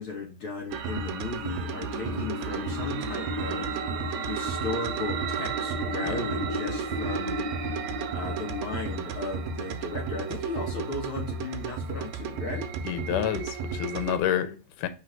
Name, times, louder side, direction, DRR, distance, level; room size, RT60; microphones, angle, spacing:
voice 1, 0.0-3.7 4.3-7.4 8.1-12.7, left 3 dB, 50° left, 2.1 m, -35 dB
sound 1, 0.7-14.2, right 6 dB, 75° right, 1.8 m, -33 dB
Wind, 1.7-10.4, left 1 dB, 15° left, 1.1 m, -36 dB
voice 2, 12.8-14.9, left 10 dB, 80° left, 2.4 m, -29 dB
4.8 x 4.0 x 5.8 m
omnidirectional pair, 3.6 m